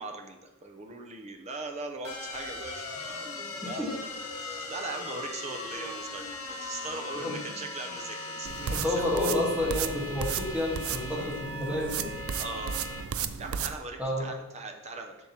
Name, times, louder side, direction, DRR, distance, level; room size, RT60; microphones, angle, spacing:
voice 1, 0.0-9.1 12.4-12.8 13.4-15.2, right 3 dB, 30° right, 3 dB, 0.7 m, -40 dB
sound 1, 2.0-13.0, left 2 dB, 85° left, 1.4 m, -39 dB
voice 2, 3.6-3.9 7.1-7.4 8.7-12.1 14.0-14.2, left 1 dB, 5° right, -4 dB, 1.4 m, -30 dB
sound 2, 8.4-13.8, right 7 dB, 70° right, 0.4 m, -35 dB
7.1 x 6.3 x 2.9 m, 1.0 s
head